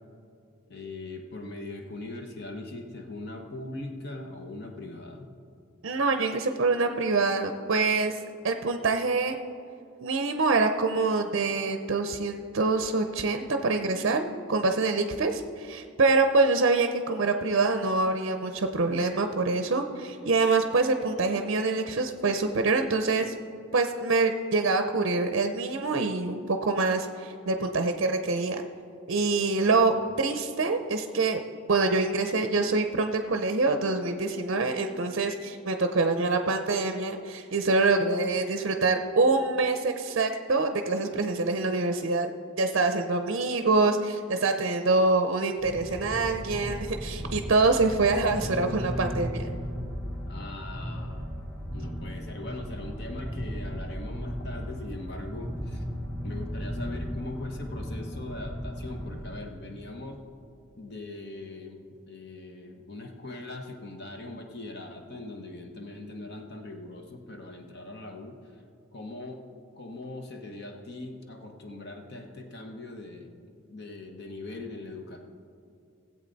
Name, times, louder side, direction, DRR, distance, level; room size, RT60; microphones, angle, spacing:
voice 1, 0.7-5.3 29.8-30.0 48.3-48.8 50.3-51.3 51.7-55.8 56.2-60.2 60.8-68.6 68.9-69.4 69.8-73.4 73.7-75.2, left 2 dB, 50° left, 3 dB, 1.0 m, -41 dB
voice 2, 5.8-8.2 8.4-9.4 10.0-23.3 23.7-28.6 29.1-31.4 31.7-42.3 42.6-49.5, right 3 dB, 55° right, 7 dB, 0.5 m, -25 dB
sound 1, 45.6-59.3, equal, 5° left, 1.9 m, -36 dB
17.5 x 8.0 x 4.0 m, 2.5 s
head